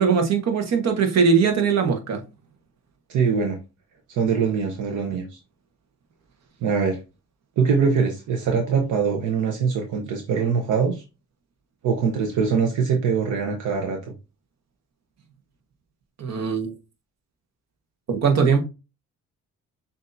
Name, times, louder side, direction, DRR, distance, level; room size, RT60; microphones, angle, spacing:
voice 1, 0.0-2.2 16.2-16.7 18.1-18.6, right 6 dB, 60° right, 1.2 m, -20 dB
voice 2, 3.1-3.6 4.1-5.4 6.6-7.0 7.6-11.0 11.8-14.0, right 5 dB, 80° right, 0.9 m, -23 dB
6.3 x 2.7 x 2.6 m
cardioid pair, 90°, 30 cm